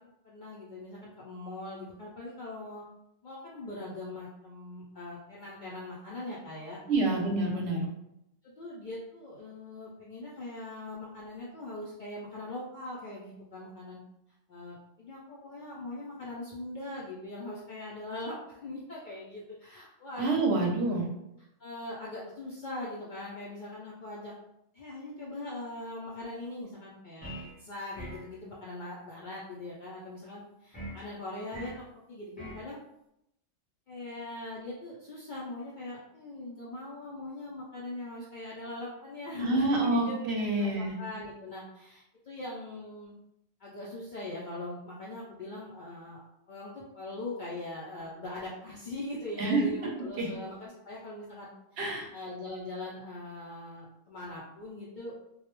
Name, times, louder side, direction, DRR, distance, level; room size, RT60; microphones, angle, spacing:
voice 1, 0.2-2.8 3.2-6.8 7.4-7.6 8.4-14.0 14.5-18.4 18.6-20.7 21.6-24.3 24.7-27.3 27.6-31.7 32.1-32.8 33.9-40.2 40.5-43.1 43.6-46.2 46.5-55.1, left 2 dB, 75° left, -6 dB, 0.4 m, -41 dB
voice 2, 6.9-7.9 20.2-21.1 39.4-40.9 49.4-49.9 50.2-50.3 51.8-52.1, right 2 dB, 65° right, 0 dB, 0.8 m, -27 dB
sound 1, 27.2-27.6 27.9-28.3 30.7-31.0 31.5-31.8 32.4-32.7, equal, 10° left, 0.4 m, -42 dB
2.3 x 2.0 x 2.9 m, 0.83 s
omnidirectional pair, 1.4 m